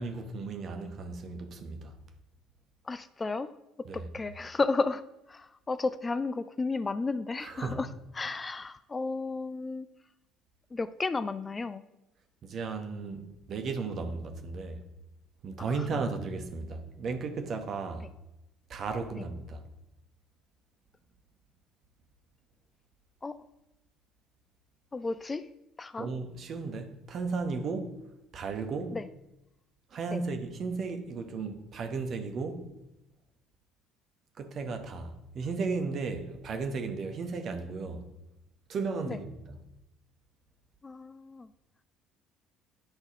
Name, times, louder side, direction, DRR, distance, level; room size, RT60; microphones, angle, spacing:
voice 1, 0.0-2.0 3.8-4.0 7.4-7.8 12.4-14.8 15.4-18.1 18.7-19.6 26.0-27.9 28.3-29.0 29.9-32.7 34.4-38.1 38.7-39.6, right 4 dB, 45° right, 1.1 m, -35 dB
voice 2, 2.9-3.5 3.9-5.0 5.3-7.9 8.2-9.9 10.7-11.8 15.7-15.8 23.2-23.4 24.9-25.5 25.8-26.1 28.9-29.1 30.1-30.2 39.1-39.2 40.8-41.5, left 3 dB, 25° left, 0.4 m, -33 dB
10.5 x 4.1 x 4.9 m
figure-of-eight pair, 55°, 0 cm